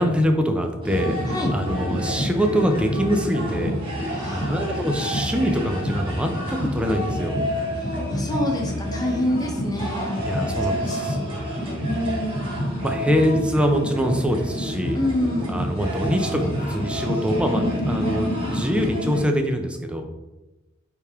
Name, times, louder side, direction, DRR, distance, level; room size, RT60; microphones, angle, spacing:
voice 1, 0.0-1.2 1.5-3.8 4.3-7.4 10.3-11.5 12.8-15.0 15.5-20.1, equal, 5° right, 4 dB, 0.6 m, -24 dB
sound 1, 0.8-19.2, equal, 25° right, 1.9 m, -27 dB
voice 2, 4.1-4.5 7.7-10.5 10.8-12.5 14.9-15.6, left 1 dB, 20° left, 0 dB, 1.1 m, -28 dB
9.0 x 3.5 x 3.6 m, 1.1 s
head